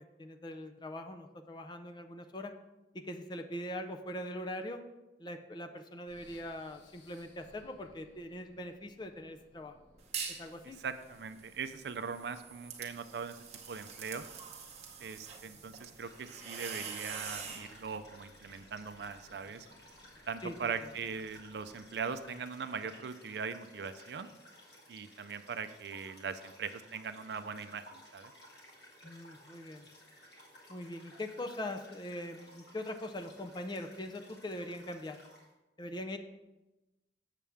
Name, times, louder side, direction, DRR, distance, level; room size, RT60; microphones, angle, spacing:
voice 1, 0.2-2.5 2.9-4.8 5.2-9.8 10.4-10.8 20.4-20.7 29.0-29.9 30.7-35.2 35.8-36.2, left 1 dB, 25° left, 6 dB, 0.5 m, -42 dB
sound 1, 6.1-22.2, equal, 90° left, 1.1 m, -63 dB
sound 2, 10.0-10.5 10.9-17.7, right 6 dB, 35° right, 0.9 m, -44 dB
voice 2, 10.6-13.4 13.7-14.3 15.0-19.7 20.3-24.3 24.9-28.3, right 5 dB, 65° right, 11 dB, 0.4 m, -40 dB
sound 3, 15.9-35.5, equal, 65° left, 1.9 m, -57 dB
7.4 x 7.0 x 3.5 m, 1.0 s
head